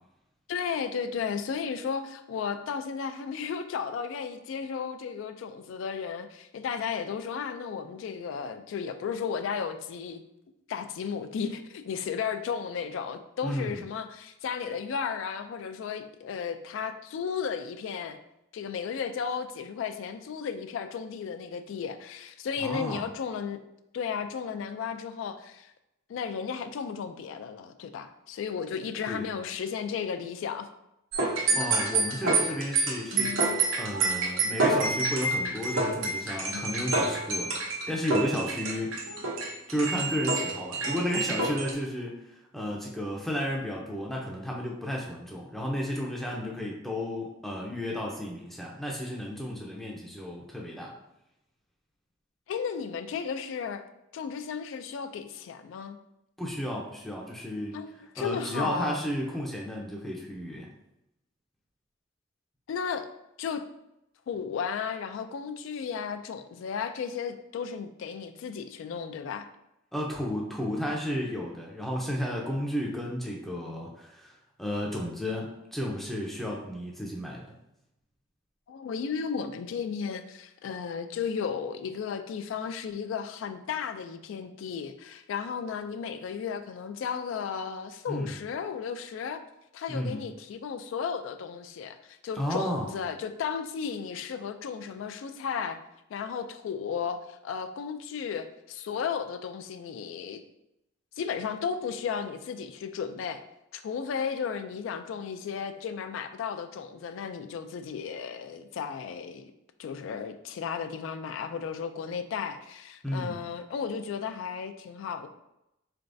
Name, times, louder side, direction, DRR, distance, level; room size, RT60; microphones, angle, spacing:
voice 1, 0.5-10.2 10.7-18.2 18.5-23.6 23.9-25.7 26.1-30.7 52.5-53.8 54.1-56.0 57.7-59.0 62.7-63.1 63.4-63.6 64.3-69.5 78.7-89.4 89.7-95.8 96.1-100.4 101.2-103.4 103.7-109.5 109.8-115.3, left 6 dB, 70° left, 10 dB, 0.3 m, -34 dB
voice 2, 13.4-13.8 22.6-23.0 29.1-29.3 31.2-33.4 33.8-38.9 39.7-50.9 56.4-57.8 58.2-60.7 69.9-77.5 88.1-88.4 89.9-90.2 92.4-92.9 113.0-113.4, equal, ahead, -2 dB, 0.5 m, -33 dB
sound 1, 31.1-41.7, right 3 dB, 85° right, 0.8 m, -28 dB
3.9 x 3.4 x 2.6 m, 0.85 s
head